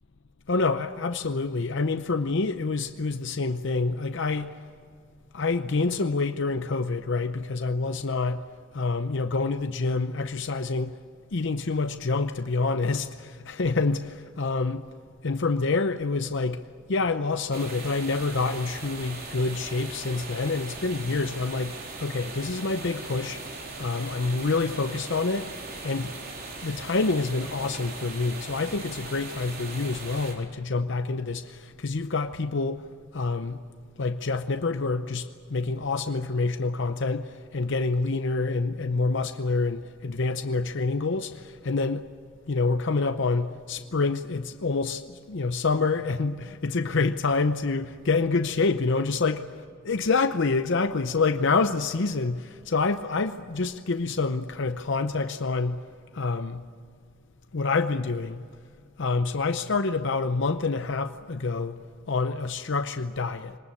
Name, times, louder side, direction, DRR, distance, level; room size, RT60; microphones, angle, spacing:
voice 1, 0.5-4.5 5.3-8.4 8.7-11.0 11.3-14.9 15.2-16.6 16.9-23.4 23.8-25.5 25.8-26.1 26.6-32.8 33.1-33.6 34.0-42.0 42.5-49.4 49.8-55.8 56.1-56.6 57.5-58.4 59.0-61.8 62.1-63.6, left 3 dB, 60° left, 0.7 m, -27 dB
sound 1, 17.5-30.3, right 3 dB, 50° right, 4.0 m, -39 dB
24.5 x 19.5 x 8.5 m
head